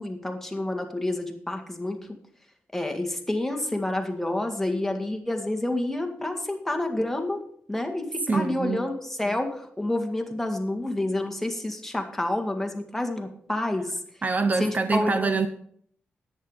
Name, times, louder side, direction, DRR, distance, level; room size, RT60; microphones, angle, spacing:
voice 1, 0.0-2.2 2.7-7.4 7.7-14.0 14.6-15.3, left 1 dB, 5° left, 2.0 m, -29 dB
voice 2, 8.3-8.8 14.2-15.5, right 4 dB, 40° right, 0.8 m, -25 dB
10.5 x 9.0 x 5.6 m
cardioid pair, 80°, 4 cm